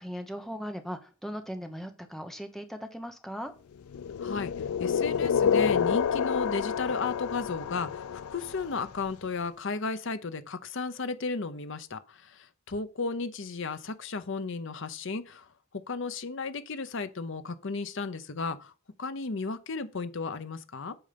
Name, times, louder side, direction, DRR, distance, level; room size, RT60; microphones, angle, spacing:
voice 1, 0.0-3.5, equal, ahead, 1.1 m, -38 dB
sound 1, 3.9-8.9, left 7 dB, 90° left, 0.4 m, -28 dB
voice 2, 4.2-15.5 15.9-18.7 19.0-21.0, left 4 dB, 60° left, 0.8 m, -34 dB
8.8 x 5.4 x 5.2 m
head